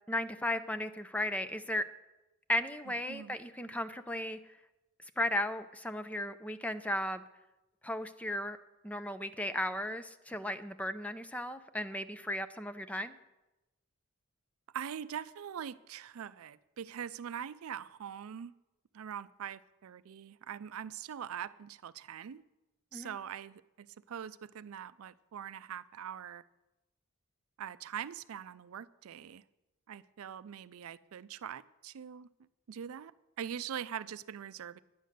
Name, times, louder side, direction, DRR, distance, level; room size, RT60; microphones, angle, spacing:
voice 1, 0.1-1.8 2.5-4.4 5.2-7.2 7.8-8.6 8.8-13.1 22.9-23.1, left 1 dB, 5° left, 11 dB, 0.4 m, -35 dB
voice 2, 2.9-3.4 14.7-18.5 18.9-22.4 22.9-26.4 27.6-29.4 29.9-32.3 32.7-33.1 33.4-34.8, right 8 dB, 75° right, 16 dB, 0.4 m, -43 dB
10.0 x 9.3 x 6.5 m, 0.99 s
head